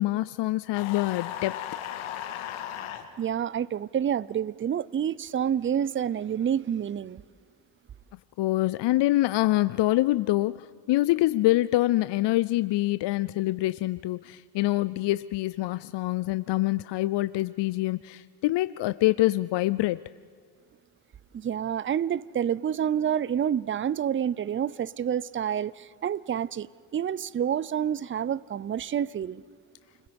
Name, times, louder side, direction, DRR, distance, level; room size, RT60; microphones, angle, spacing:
voice 1, 0.0-1.6 8.4-20.0, left 17 dB, 60° left, 0.6 m, -25 dB
sound 1, 0.7-3.0, left 11 dB, 80° left, 2.0 m, -36 dB
voice 2, 3.2-7.2 21.3-26.7 26.9-29.4, right 9 dB, 25° right, 0.5 m, -28 dB
29.5 x 21.5 x 5.3 m
supercardioid pair, 80°, 49 cm